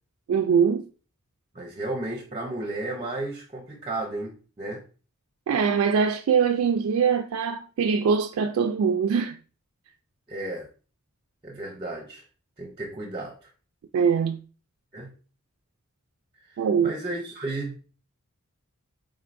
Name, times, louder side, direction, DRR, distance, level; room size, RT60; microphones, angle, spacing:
voice 1, 0.3-0.9 5.5-9.4 13.9-14.4 16.6-16.9, right 6 dB, 75° right, 0.3 m, -22 dB
voice 2, 1.5-4.8 10.3-10.7 11.4-12.2 12.6-13.5 14.9-15.1 16.5-17.8, right 2 dB, 25° right, 0.6 m, -33 dB
4.4 x 3.7 x 2.5 m
head